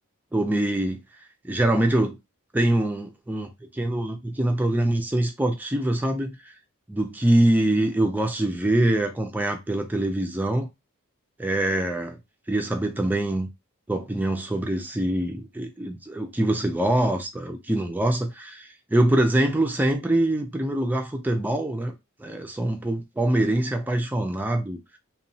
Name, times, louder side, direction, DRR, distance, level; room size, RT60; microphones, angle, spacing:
voice 1, 0.3-1.0 1.4-2.2 2.5-6.4 6.9-10.7 11.4-12.2 12.5-13.5 13.9-21.9 22.2-25.0, right 1 dB, 10° right, 0.3 m, -24 dB
2.9 x 2.1 x 2.6 m
head